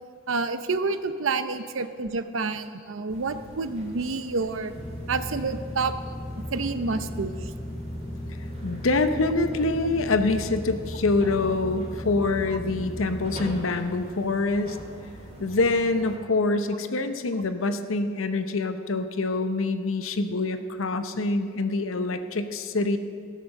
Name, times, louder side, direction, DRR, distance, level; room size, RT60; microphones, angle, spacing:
voice 1, 0.3-4.7 5.1-5.9 6.5-7.5, right 4 dB, 75° right, 11 dB, 0.7 m, -28 dB
sound 1, 3.1-16.2, right 1 dB, 35° right, 2.9 m, -44 dB
sound 2, 4.7-13.7, left 1 dB, 20° left, 0.7 m, -36 dB
voice 2, 8.6-14.8 15.4-23.0, left 3 dB, 90° left, 9 dB, 0.8 m, -25 dB
16.0 x 6.7 x 6.4 m, 2.2 s
head